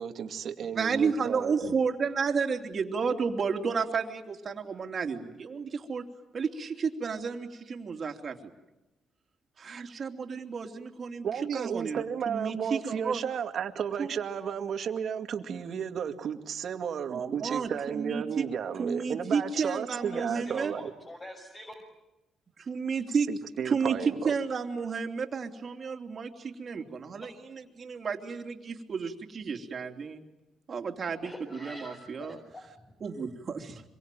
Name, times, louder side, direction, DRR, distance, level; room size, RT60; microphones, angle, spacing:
voice 1, 0.0-1.5 11.2-20.9 23.3-24.3, right 7 dB, 60° right, 6 dB, 2.3 m, -33 dB
voice 2, 0.7-6.0 6.3-8.5 9.6-11.2 11.5-13.2 14.0-14.1 17.1-18.5 18.8-20.7 22.6-23.3 23.6-24.0 24.2-30.2 30.7-32.4 33.0-33.8, right 5 dB, 45° right, 5 dB, 3.1 m, -32 dB
voice 3, 20.0-21.7 31.2-32.9, left 1 dB, 25° left, 1 dB, 6.3 m, -45 dB
26.0 x 23.5 x 9.2 m, 0.99 s
cardioid pair, 90°, 0 cm